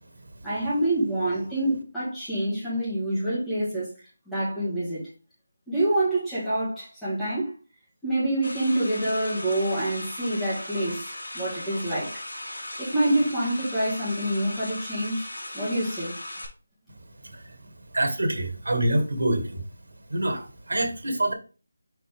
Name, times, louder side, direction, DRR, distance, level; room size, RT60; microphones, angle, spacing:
voice 1, 0.4-3.9 4.3-5.0 5.7-7.5 8.0-12.1 12.8-15.3 15.5-16.1, right 1 dB, ahead, 2.1 m, -26 dB
sound 1, 8.4-16.5, left 1 dB, 80° left, 2.8 m, -37 dB
voice 2, 17.9-19.6 20.1-21.3, right 1 dB, 80° right, 2.2 m, -26 dB
6.3 x 4.2 x 3.6 m
figure-of-eight pair, 175°, 0 cm